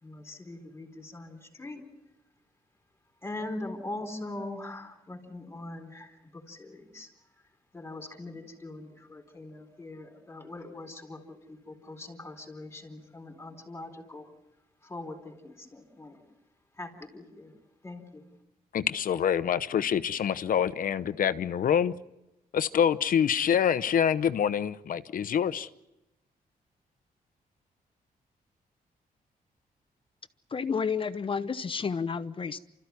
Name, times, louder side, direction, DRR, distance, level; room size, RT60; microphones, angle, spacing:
voice 1, 0.0-1.8 3.2-14.3 14.8-16.2 16.7-17.5 17.8-18.2, left 2 dB, 15° left, 4.1 m, -42 dB
voice 2, 18.7-21.9 22.5-25.7, left 8 dB, 65° left, 0.9 m, -26 dB
voice 3, 30.5-32.6, left 6 dB, 35° left, 0.9 m, -30 dB
29.5 x 14.0 x 9.6 m
wide cardioid pair, 140°, 15 cm